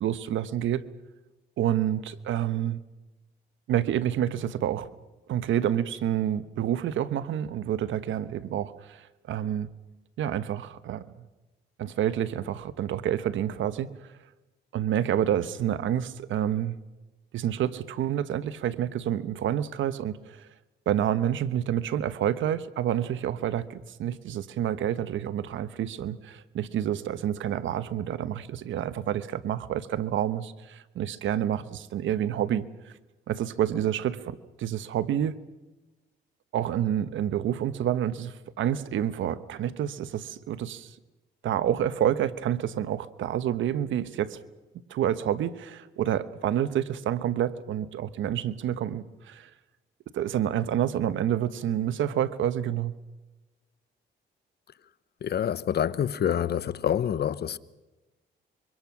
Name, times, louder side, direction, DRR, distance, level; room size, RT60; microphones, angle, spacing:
voice 1, 0.0-0.8 1.6-2.8 3.7-4.9 5.3-9.7 10.2-11.1 11.8-13.9 14.7-16.8 17.3-20.5 20.9-32.6 33.3-35.4 36.5-40.9 41.4-44.4 44.9-49.5 50.1-52.9, right 10 dB, 75° right, 1.1 m, -28 dB
voice 2, 55.2-57.6, left 9 dB, 55° left, 0.9 m, -27 dB
25.5 x 24.0 x 6.1 m
cardioid pair, 90°, 20 cm